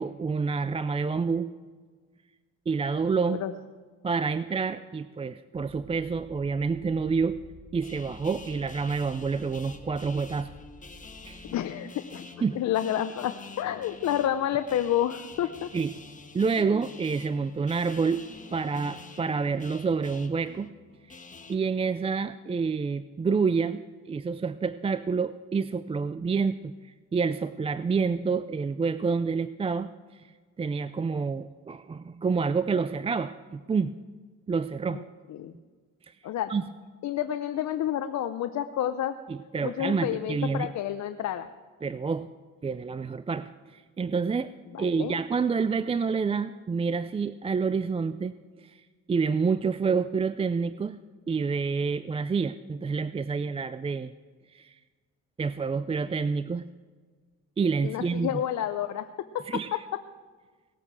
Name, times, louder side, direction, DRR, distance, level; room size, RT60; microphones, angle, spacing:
voice 1, 0.0-1.5 2.7-3.4 4.0-7.4 7.7-10.5 11.3-11.4 12.4-12.6 15.7-15.9 16.3-18.3 18.5-20.7 21.5-26.7 27.1-30.2 30.6-33.9 34.5-35.0 36.1-36.2 36.5-36.6 39.3-40.7 41.8-42.3 42.6-44.5 44.8-48.8 49.1-51.0 51.3-54.1 54.5-54.8 55.4-56.6 57.6-58.4 59.5-59.7, right 5 dB, 20° right, 13 dB, 0.4 m, -28 dB
sound 1, 5.5-11.5, equal, 85° right, 1.8 m, -51 dB
sound 2, 7.8-21.5, left 4 dB, 25° left, 1.4 m, -47 dB
voice 2, 11.5-12.2 12.5-15.7 34.9-35.0 35.3-35.5 36.2-36.5 37.0-39.2 39.6-41.5 44.7-45.2 57.8-59.4 59.7-59.8, left 11 dB, 65° left, 8 dB, 0.7 m, -29 dB
18.5 x 8.7 x 6.2 m, 1.5 s
cardioid pair, 90°, 30 cm